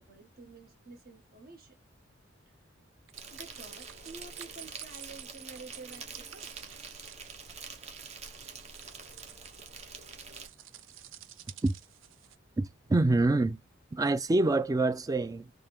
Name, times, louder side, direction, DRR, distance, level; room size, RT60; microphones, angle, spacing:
voice 1, 0.0-1.8 3.3-6.5, right 3 dB, 50° right, 1.3 m, -50 dB
Insect, 3.1-10.5, right 5 dB, 35° right, 0.8 m, -46 dB
sound 1, 3.1-12.4, right 12 dB, 90° right, 0.4 m, -51 dB
voice 2, 12.6-13.6 13.9-15.5, right 2 dB, 20° right, 0.3 m, -26 dB
3.7 x 2.3 x 3.4 m
head